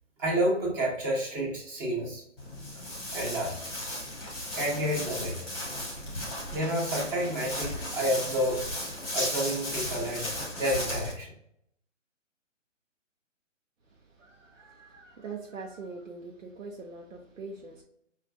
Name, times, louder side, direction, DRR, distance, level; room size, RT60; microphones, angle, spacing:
voice 1, 0.2-2.2 3.1-3.6 4.5-5.4 6.5-8.7 9.1-11.3, equal, 20° right, -3 dB, 1.0 m, -30 dB
Walk footsteps, 2.4-11.1, left 1 dB, 10° left, 1.0 m, -35 dB
voice 2, 13.8-17.8, right 4 dB, 90° right, 0 dB, 0.8 m, -43 dB
5.3 x 2.4 x 2.4 m, 0.73 s
hypercardioid pair, 150°, 38 cm